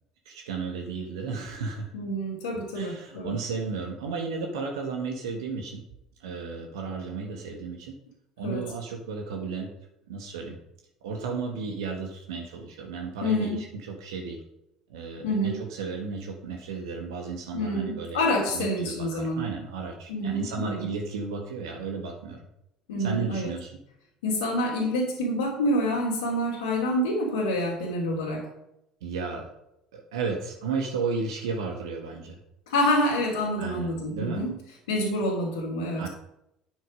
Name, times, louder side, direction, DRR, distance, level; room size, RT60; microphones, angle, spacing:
voice 1, 0.3-1.9 2.7-5.8 6.2-7.9 8.4-9.7 10.1-10.6 11.0-14.4 14.9-18.2 18.5-22.4 23.0-23.7 29.0-29.5 29.9-32.4 33.6-34.4 36.0-36.1, right 4 dB, 70° right, 1 dB, 1.7 m, -33 dB
voice 2, 1.9-3.4 8.4-8.7 13.2-13.6 15.2-15.6 17.5-19.4 20.1-20.9 22.9-23.5 24.2-28.5 32.7-34.5 34.9-36.1, left 1 dB, 75° left, -6 dB, 3.0 m, -27 dB
9.3 x 8.3 x 5.3 m, 0.83 s
figure-of-eight pair, 60°, 3 cm